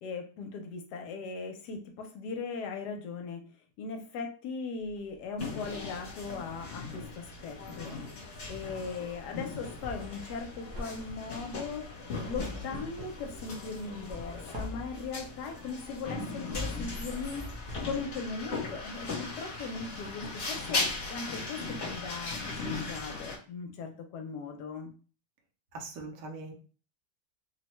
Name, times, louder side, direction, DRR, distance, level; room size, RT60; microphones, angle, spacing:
voice 1, 0.0-3.4 3.8-7.9 8.5-11.9 12.2-17.4 17.8-20.8 21.1-24.9, left 4 dB, 75° left, 4 dB, 1.1 m, -39 dB
sound 1, 4.8-5.9 6.2-20.0 20.4-20.5, left 2 dB, 55° right, 1.0 m, -45 dB
sound 2, 5.4-23.4, left 3 dB, 50° left, 1.1 m, -38 dB
voice 2, 25.7-26.5, right 3 dB, 80° right, 2 dB, 1.4 m, -41 dB
3.3 x 2.1 x 3.0 m, 0.38 s
omnidirectional pair, 1.8 m